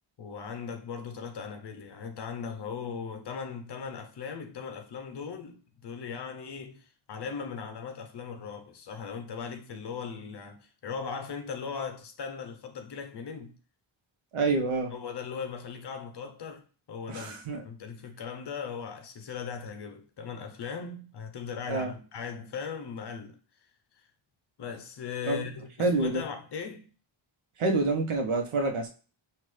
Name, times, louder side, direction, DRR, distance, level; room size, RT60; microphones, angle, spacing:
voice 1, 0.2-13.6 14.9-23.4 24.6-26.9, left 6 dB, 55° left, 0.8 m, -38 dB
voice 2, 14.3-14.9 17.1-17.6 21.7-21.9 25.3-25.5 25.8-26.2 27.6-28.9, right 3 dB, 90° right, 1.0 m, -27 dB
5.7 x 2.6 x 3.2 m
wide cardioid pair, 170°, 49 cm